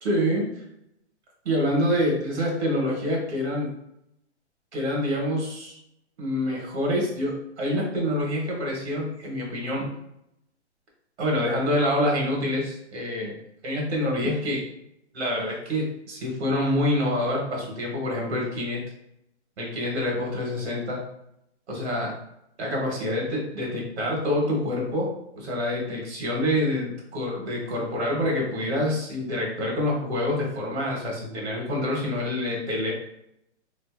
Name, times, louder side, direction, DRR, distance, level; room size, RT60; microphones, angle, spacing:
voice 1, 0.0-0.5 1.4-3.7 4.7-5.8 6.2-9.9 11.2-13.3 13.6-14.6 15.1-18.8 19.6-21.0 21.7-22.1 22.6-32.9, left 1 dB, 70° right, -2 dB, 1.2 m, -26 dB
3.5 x 2.7 x 2.4 m, 0.79 s
hypercardioid pair, 175°, 35 cm